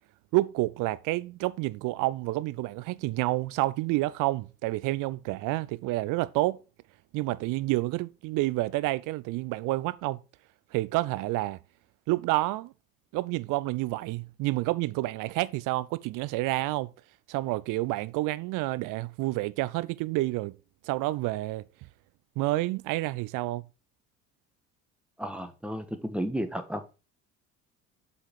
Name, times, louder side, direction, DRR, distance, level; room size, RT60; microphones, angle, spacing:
voice 1, 0.3-6.6 7.1-10.2 10.7-11.6 12.1-12.7 13.1-16.9 17.3-20.5 20.8-21.6 22.4-23.6, right 19 dB, 50° right, 0.5 m, -29 dB
voice 2, 25.2-26.8, equal, 5° right, 1.0 m, -33 dB
5.9 x 3.8 x 5.1 m
figure-of-eight pair, 55°, 42 cm